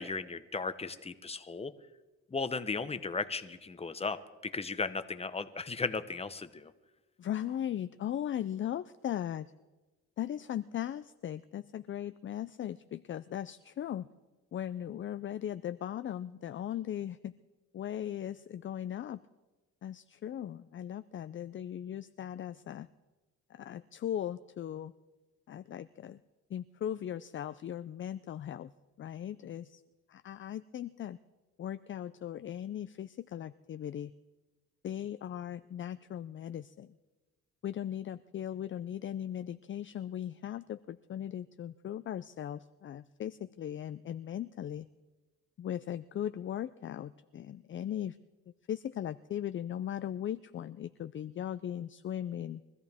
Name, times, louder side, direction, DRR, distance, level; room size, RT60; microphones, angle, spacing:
voice 1, 0.0-1.7 2.3-6.7, left 4 dB, 20° left, 11 dB, 0.9 m, -36 dB
voice 2, 7.2-9.5 10.2-14.1 14.5-17.3 17.7-19.2 19.8-22.9 23.5-24.9 25.5-26.2 26.5-28.7 29.0-29.8 30.1-31.2 31.6-34.1 34.8-36.9 37.6-44.9 45.6-48.2 48.7-52.6, left 10 dB, 40° left, 11 dB, 0.5 m, -38 dB
23.5 x 14.0 x 3.6 m, 1.2 s
cardioid pair, 90°, 30 cm